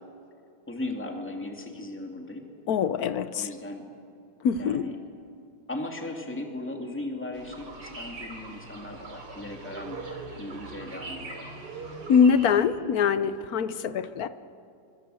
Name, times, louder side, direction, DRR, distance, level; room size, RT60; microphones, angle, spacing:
voice 1, 0.7-2.5 3.3-3.8 4.5-5.0 5.7-11.5, left 2 dB, 5° left, 2 dB, 2.5 m, -37 dB
voice 2, 2.7-3.5 4.4-4.9 12.1-14.3, left 6 dB, 60° left, 13 dB, 1.1 m, -23 dB
sound 1, 7.3-12.6, right 3 dB, 55° right, 3.4 m, -41 dB
25.0 x 25.0 x 7.8 m, 2.5 s
omnidirectional pair, 2.3 m